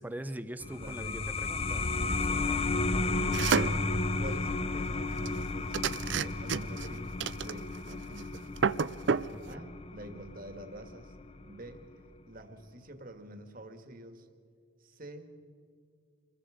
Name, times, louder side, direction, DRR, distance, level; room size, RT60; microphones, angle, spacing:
voice 1, 0.0-3.1 9.3-9.7, right 1 dB, 10° right, 11 dB, 0.7 m, -43 dB
sound 1, 0.6-11.8, left 3 dB, 30° left, 0.6 m, -33 dB
voice 2, 0.8-1.3 2.9-3.5 4.1-8.6 9.5-11.2 11.4-11.9 12.3-14.3 14.8-15.3, right 1 dB, 40° right, 7 dB, 1.8 m, -47 dB
sound 2, 3.3-3.8 5.3-5.4 5.7-6.9 7.2-7.9 8.2-8.3 8.6-9.3, right 6 dB, 60° right, 0.5 m, -29 dB
26.5 x 21.0 x 5.1 m, 2.3 s
head